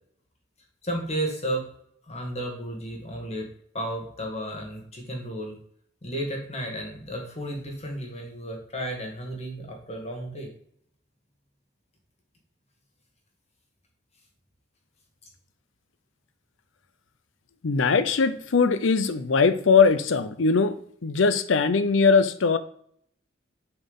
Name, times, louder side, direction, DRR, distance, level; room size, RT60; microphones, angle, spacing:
voice 1, 0.8-1.7 2.0-3.5 3.7-5.6 6.0-10.5, right 1 dB, 35° left, 1 dB, 1.7 m, -33 dB
voice 2, 17.6-22.6, left 5 dB, 75° left, 12 dB, 0.6 m, -21 dB
6.8 x 4.4 x 5.3 m, 0.65 s
head